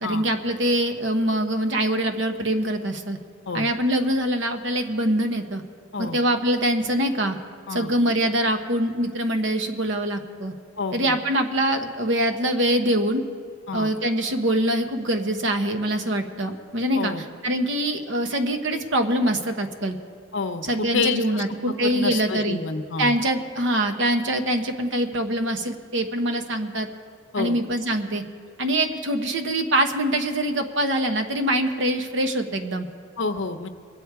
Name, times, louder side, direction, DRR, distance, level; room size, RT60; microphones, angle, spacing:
voice 1, 0.0-3.2 3.5-5.6 6.0-7.4 7.7-10.5 10.9-13.2 13.7-17.1 17.4-20.0 20.6-22.6 23.0-26.9 27.4-28.2 28.6-32.9, right 1 dB, 65° right, 6 dB, 1.0 m, -24 dB
voice 2, 10.8-11.2 13.7-13.9 16.9-17.2 20.3-23.1 27.3-27.6 33.2-33.7, left 4 dB, 65° left, 8 dB, 0.8 m, -29 dB
22.0 x 8.2 x 4.7 m, 2.2 s
head